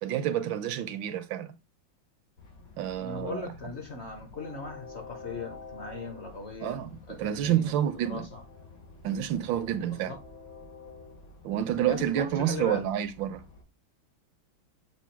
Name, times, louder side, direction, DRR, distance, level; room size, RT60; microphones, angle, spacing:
voice 1, 0.0-1.6 2.8-3.5 6.6-6.9 7.2-8.3 9.0-10.1 11.4-13.4, right 11 dB, 75° right, 1.4 m, -29 dB
Train, 2.4-13.6, left 3 dB, 75° left, 3.2 m, -49 dB
voice 2, 3.0-7.7 8.0-8.4 9.9-10.2 11.9-12.8, left 4 dB, 45° left, 1.0 m, -39 dB
7.2 x 2.6 x 5.7 m
omnidirectional pair, 2.2 m